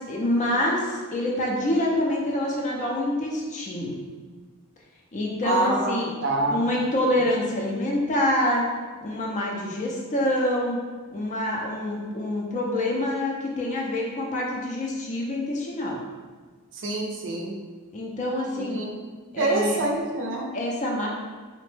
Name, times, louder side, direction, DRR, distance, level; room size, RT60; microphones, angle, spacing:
voice 1, 0.0-3.9 5.1-6.1 6.5-8.6 9.0-10.8 11.1-16.0 17.9-18.8 19.3-19.8 20.5-21.1, left 1 dB, 35° left, -2 dB, 0.4 m, -26 dB
voice 2, 5.4-6.6 16.8-17.5 18.5-19.0 19.4-20.5, right 2 dB, 55° right, -1 dB, 0.5 m, -26 dB
3.0 x 2.1 x 3.1 m, 1.5 s
head